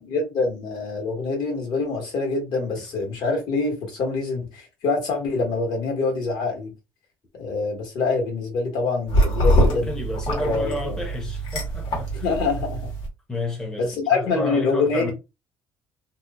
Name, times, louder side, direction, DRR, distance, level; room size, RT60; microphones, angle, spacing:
voice 1, 0.0-6.7 7.3-9.9 10.4-10.9 12.2-12.9 13.8-15.1, left 3 dB, 60° left, 1.4 m, -25 dB
sound 1, 9.1-13.1, equal, 90° left, 1.7 m, -23 dB
voice 2, 9.6-12.3 13.3-15.1, left 1 dB, 10° left, 0.6 m, -31 dB
2.8 x 2.0 x 3.6 m
cardioid pair, 175°, 8 cm